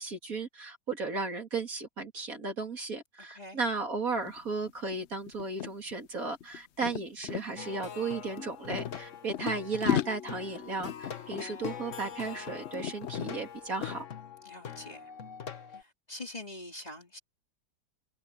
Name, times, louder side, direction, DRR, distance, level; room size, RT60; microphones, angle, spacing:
voice 1, 0.0-14.0, right 3 dB, 55° right, 3.2 m, -35 dB
sound 1, 4.2-4.4 4.7-7.5 8.3-9.5 9.8-12.4 12.6-13.4 13.8-14.0, left 10 dB, 70° left, 0.6 m, -36 dB
Plucked string instrument, 7.6-15.8, left 8 dB, 50° left, 1.5 m, -42 dB
voice 2, 14.4-15.1 15.7-17.2, left 1 dB, 20° left, 3.4 m, -44 dB
omnidirectional pair, 1.8 m